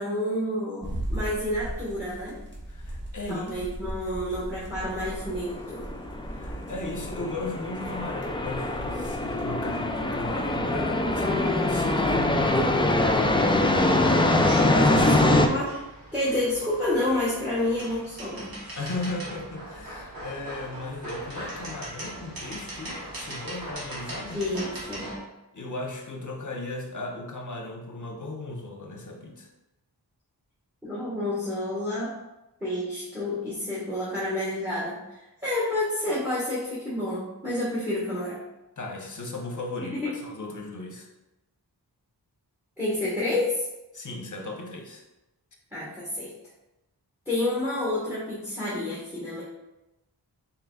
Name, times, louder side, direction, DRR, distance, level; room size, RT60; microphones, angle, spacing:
voice 1, 0.0-2.4 3.3-5.9 14.1-14.3 14.9-15.1 15.5-15.7 16.1-18.6 24.3-25.1 30.8-32.1 32.6-38.4 39.8-40.2 42.8-43.6 45.7-46.3 47.2-49.4, left 1 dB, 5° right, -8 dB, 1.3 m, -29 dB
sound 1, 0.8-14.3, right 1 dB, 25° right, 1.2 m, -40 dB
voice 2, 2.7-3.6 6.3-12.8 14.7-15.2 18.7-24.4 25.5-29.5 38.8-41.1 43.9-45.0, left 2 dB, 45° left, 1 dB, 0.8 m, -36 dB
sound 2, 4.9-15.5, left 2 dB, 15° left, 0.3 m, -24 dB
sound 3, 14.4-25.2, right 1 dB, 55° right, 1.3 m, -39 dB
4.1 x 3.9 x 2.3 m, 0.98 s
wide cardioid pair, 55°, 42 cm